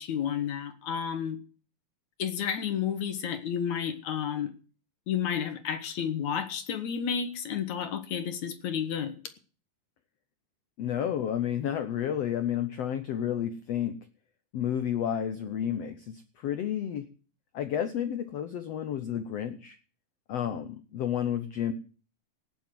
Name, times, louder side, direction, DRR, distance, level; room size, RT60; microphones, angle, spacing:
voice 1, 0.0-1.4 2.2-4.5 5.1-9.2, left 8 dB, 60° left, 11 dB, 2.1 m, -31 dB
voice 2, 10.8-14.0 14.5-17.1 17.5-19.8 20.3-21.7, left 9 dB, 80° left, 11 dB, 1.4 m, -31 dB
18.0 x 7.4 x 7.7 m, 0.39 s
omnidirectional pair, 4.3 m